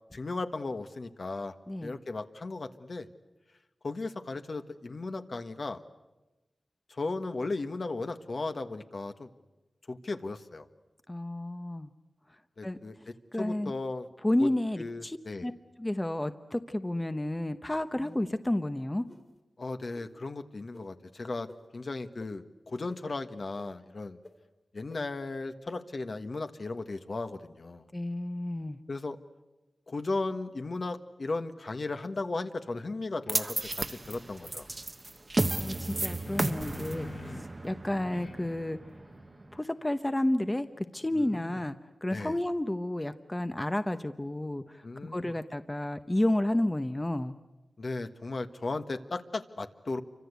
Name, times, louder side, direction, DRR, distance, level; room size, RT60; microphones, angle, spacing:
voice 1, 0.1-1.5 1.8-3.1 3.8-5.8 6.9-9.3 9.9-10.7 12.6-14.1 14.4-14.5 14.8-15.5 19.6-24.2 24.7-27.8 28.9-29.2 29.9-34.7 41.1-41.6 42.1-42.4 44.8-45.3 47.8-50.0, left 3 dB, 55° left, 8 dB, 1.5 m, -36 dB
voice 2, 11.1-11.9 12.6-12.8 13.3-13.7 14.2-15.5 15.8-19.0 27.9-28.8 35.4-38.8 39.5-40.7 40.9-44.8 45.1-47.3, left 1 dB, 15° left, 9 dB, 0.9 m, -31 dB
sound 1, 17.9-18.4 19.1-19.2 19.9-20.1 20.7-20.8 21.5-21.6 22.2-22.3 22.9-23.0 23.6-23.7 24.2-24.3 24.9-25.0, left 2 dB, 35° left, 3.1 m, -49 dB
sound 2, 33.3-33.4 35.8-37.6 38.1-41.4, left 3 dB, 75° left, 3.8 m, -47 dB
sound 3, 33.3-39.6, right 2 dB, 35° right, 1.0 m, -34 dB
28.5 x 25.0 x 8.3 m, 1.1 s
wide cardioid pair, 90°, 0 cm